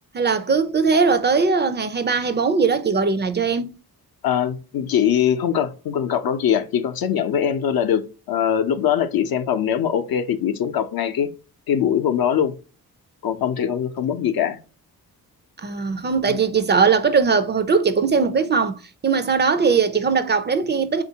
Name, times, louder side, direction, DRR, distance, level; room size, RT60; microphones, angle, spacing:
voice 1, 0.1-3.7 15.6-21.0, right 5 dB, 30° right, 0.4 m, -20 dB
voice 2, 4.2-11.3 11.7-12.5 13.2-14.6 16.3-16.4, left 9 dB, 65° left, 0.6 m, -22 dB
3.5 x 2.5 x 2.7 m
cardioid pair, 65°, 39 cm